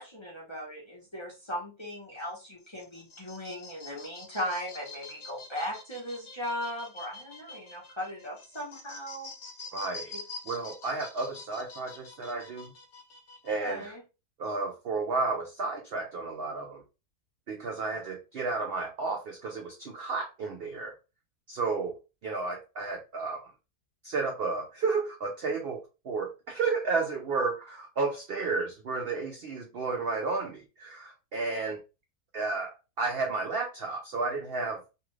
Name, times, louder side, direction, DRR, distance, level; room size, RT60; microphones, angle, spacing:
voice 1, 0.0-9.3 10.1-10.2 13.6-14.0 17.9-18.0, equal, 25° left, -5 dB, 0.8 m, -37 dB
sound 1, 2.6-13.9, left 3 dB, 60° left, 0.9 m, -46 dB
voice 2, 9.7-10.1 10.5-12.7 13.4-14.0 14.4-16.8 17.5-20.9 21.5-22.0 22.2-23.4 24.0-31.8 32.3-34.8, right 4 dB, 70° right, 2 dB, 0.5 m, -32 dB
2.6 x 2.4 x 3.1 m, 0.30 s
omnidirectional pair, 1.5 m